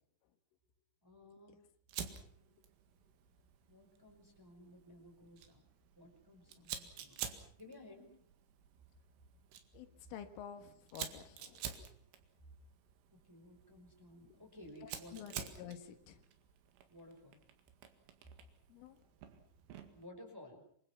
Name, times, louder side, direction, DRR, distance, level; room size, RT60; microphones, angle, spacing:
voice 1, 1.0-1.6 3.7-5.6 5.9-8.1 10.0-10.1 13.1-15.5 16.9-17.4 19.9-20.6, left 1 dB, 5° right, 2 dB, 4.3 m, -56 dB
Fire, 1.9-20.1, right 9 dB, 80° right, 4.5 m, -50 dB
voice 2, 9.7-11.9 14.8-16.2 18.7-19.0, left 9 dB, 80° left, 7 dB, 4.1 m, -50 dB
27.5 x 24.5 x 6.0 m, 0.63 s
omnidirectional pair, 5.7 m